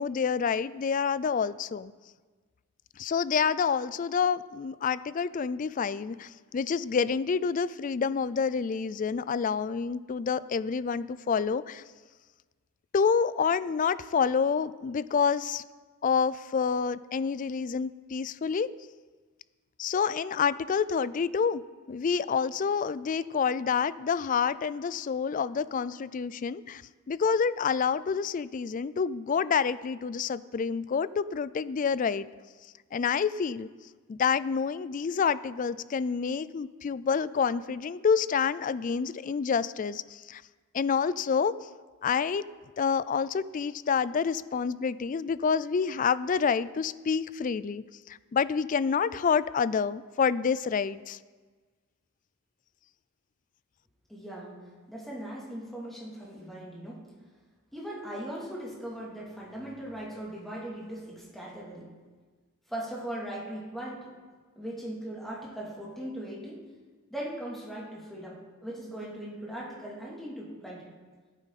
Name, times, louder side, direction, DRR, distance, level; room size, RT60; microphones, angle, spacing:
voice 1, 0.0-1.9 3.0-11.8 12.9-15.6 16.0-18.7 19.8-21.6 21.9-26.8 27.1-32.3 32.9-33.7 34.1-40.4 40.7-41.6 42.0-42.4 42.8-51.2, left 6 dB, 35° left, 16 dB, 0.3 m, -28 dB
voice 2, 54.1-54.6 54.9-57.0 57.7-61.9 62.7-64.1 64.6-66.6 67.1-70.9, right 1 dB, ahead, -6 dB, 2.8 m, -39 dB
16.5 x 9.1 x 4.1 m, 1.4 s
head